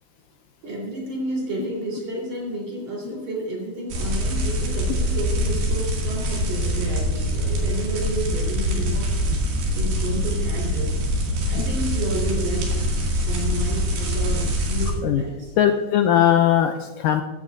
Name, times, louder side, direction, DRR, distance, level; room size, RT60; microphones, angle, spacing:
voice 1, 0.6-9.1 9.7-10.9 11.5-12.7 13.2-15.5 16.2-16.3, right 1 dB, 45° right, -3 dB, 4.7 m, -31 dB
sound 1, 3.9-14.9, equal, 75° right, 4.1 m, -24 dB
voice 2, 15.6-17.2, left 10 dB, 90° left, 6 dB, 1.9 m, -19 dB
16.0 x 12.0 x 2.6 m, 1.1 s
omnidirectional pair, 4.5 m